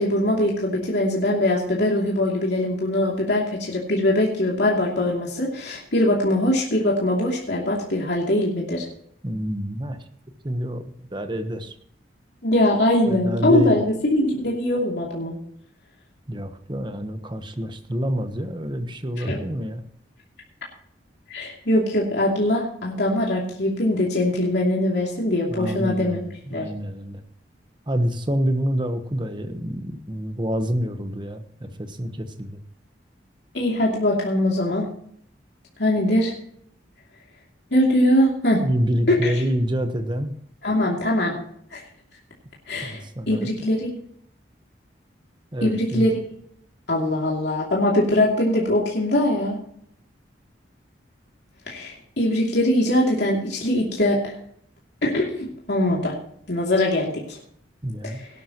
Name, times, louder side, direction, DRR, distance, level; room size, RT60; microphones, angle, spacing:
voice 1, 0.0-8.9 12.4-15.4 19.3-19.4 21.3-26.2 26.5-26.7 33.5-34.9 35.8-36.3 37.7-38.6 39.1-39.3 40.6-41.3 41.7-41.8 42.7-43.9 45.6-46.2 46.9-49.6 51.7-54.3 55.0-56.2 56.5-57.4 58.0-58.3, left 1 dB, 65° left, -3 dB, 2.7 m, -22 dB
voice 2, 9.2-10.0 10.4-10.8 11.1-11.7 13.1-13.8 16.3-19.8 25.5-27.2 27.9-32.6 38.6-40.3 42.8-43.5 45.5-46.1 57.8-58.2, equal, 25° right, 8 dB, 1.1 m, -27 dB
18.0 x 11.5 x 3.0 m, 0.66 s
head